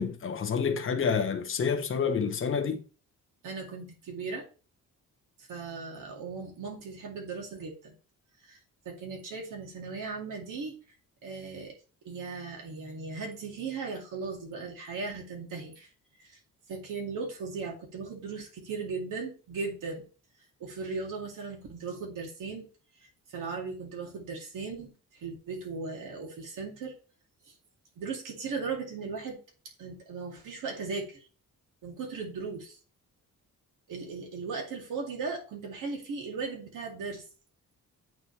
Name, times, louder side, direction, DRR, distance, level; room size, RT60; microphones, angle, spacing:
voice 1, 0.0-2.8, left 6 dB, 40° left, 0.9 m, -28 dB
voice 2, 3.4-4.4 5.4-7.9 8.4-8.6 8.9-10.8 11.2-11.8 12.0-15.9 16.2-16.4 16.7-20.0 20.6-22.7 23.3-24.9 25.2-27.0 27.5-27.6 28.0-29.4 29.8-31.2 31.8-32.8 33.9-37.2, right 4 dB, 80° right, 2.4 m, -37 dB
9.0 x 4.3 x 3.3 m
wide cardioid pair, 175°, 31 cm